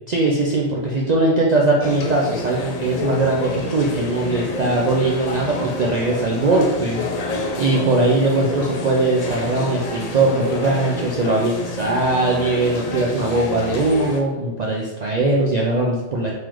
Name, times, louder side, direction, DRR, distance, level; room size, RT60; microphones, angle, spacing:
voice 1, 0.1-7.0 7.6-16.3, right 2 dB, 65° right, -3 dB, 0.4 m, -20 dB
sound 1, 1.8-14.2, left 2 dB, 80° left, 0.3 m, -29 dB
3.7 x 3.1 x 3.0 m, 1.1 s
omnidirectional pair, 1.3 m